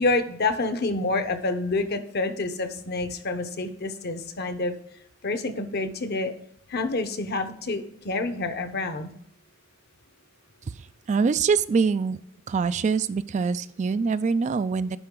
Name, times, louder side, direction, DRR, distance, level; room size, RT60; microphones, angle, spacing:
voice 1, 0.0-4.7 5.2-6.3 6.7-9.2, left 3 dB, 50° left, 8 dB, 0.9 m, -28 dB
voice 2, 10.7-12.2 12.5-15.0, right 5 dB, 35° right, 14 dB, 0.3 m, -24 dB
10.0 x 5.6 x 3.8 m, 0.70 s
head